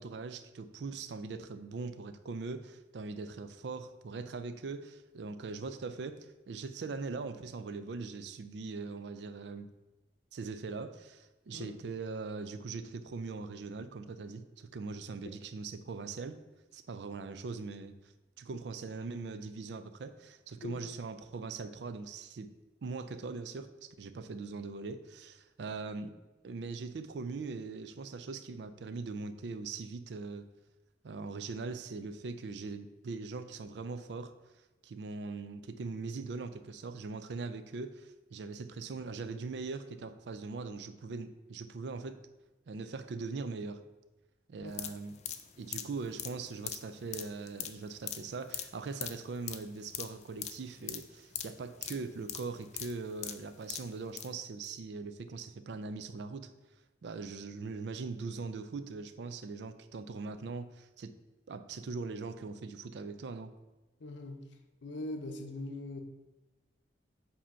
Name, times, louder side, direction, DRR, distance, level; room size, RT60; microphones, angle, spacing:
voice 1, 0.0-9.7 10.3-16.4 16.7-17.9 18.4-22.5 22.8-26.2 26.4-30.4 31.0-34.3 34.8-42.2 42.7-43.8 44.5-45.2 45.6-56.5 57.0-61.1 61.5-63.5, right 4 dB, 75° right, 11 dB, 0.4 m, -41 dB
sound 1, 44.7-54.3 54.6-54.7, left 10 dB, 40° left, 0.4 m, -42 dB
voice 2, 64.0-64.4 64.8-66.0, left 1 dB, 85° left, 5 dB, 0.7 m, -41 dB
7.5 x 2.8 x 5.5 m, 1.1 s
head